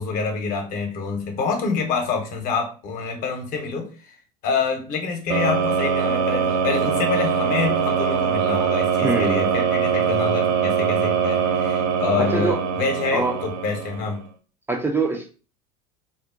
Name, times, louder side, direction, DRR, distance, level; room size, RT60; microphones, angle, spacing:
voice 1, 0.0-3.9 4.4-14.2, left 5 dB, 45° left, 4 dB, 0.9 m, -26 dB
sound 1, 5.3-14.2, right 7 dB, 55° right, 0.6 m, -22 dB
voice 2, 9.0-9.4 12.2-12.6 13.1-13.3 14.7-15.3, right 3 dB, 10° right, 1 dB, 0.5 m, -23 dB
3.8 x 2.1 x 2.4 m, 0.36 s
hypercardioid pair, 80°, 19 cm